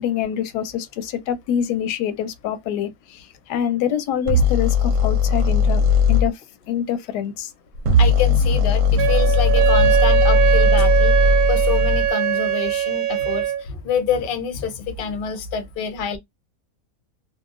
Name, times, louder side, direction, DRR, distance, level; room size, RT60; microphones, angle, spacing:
voice 1, 0.0-5.8 6.1-6.4 6.7-7.5, left 9 dB, 90° left, 1.2 m, -25 dB
sound 1, 4.3-6.3 7.7-12.1, left 3 dB, 65° right, 1.0 m, -18 dB
voice 2, 8.0-11.2 11.5-16.2, left 7 dB, 65° left, 0.5 m, -27 dB
Wind instrument woodwind instrument, 9.0-13.6, right 10 dB, 85° right, 1.2 m, -20 dB
2.8 x 2.4 x 2.5 m
omnidirectional pair, 1.7 m